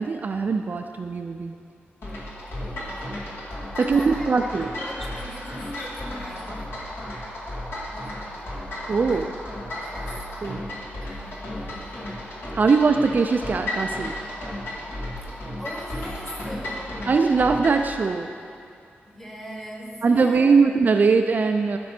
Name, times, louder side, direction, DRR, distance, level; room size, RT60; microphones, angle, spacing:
voice 1, 0.0-1.5 3.8-4.7 8.9-9.3 10.1-10.6 12.5-14.2 17.1-18.3 20.0-21.8, right 4 dB, 45° right, 5 dB, 0.4 m, -21 dB
sound 1, 2.0-17.9, left 1 dB, 65° left, 2.2 m, -34 dB
voice 2, 2.6-3.3 3.8-4.3 4.6-6.8 7.9-8.6 9.0-9.3 9.7-10.3 11.0-12.2 15.6-17.1 17.7-17.9 19.1-20.5, equal, 10° left, 0 dB, 1.3 m, -40 dB
13.5 x 6.1 x 4.3 m, 2.4 s
wide cardioid pair, 140°, 4 cm